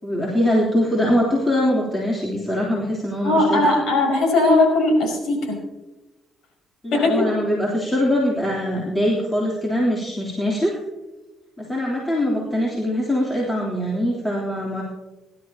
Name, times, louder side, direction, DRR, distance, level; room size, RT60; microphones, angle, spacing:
voice 1, 0.0-3.7 6.8-10.7 11.6-14.8, equal, 20° left, -5 dB, 3.4 m, -22 dB
voice 2, 3.2-5.6 6.9-7.2, left 2 dB, 75° left, 1 dB, 5.5 m, -18 dB
23.0 x 12.0 x 2.9 m, 1.1 s
cardioid pair, 90°, 0 cm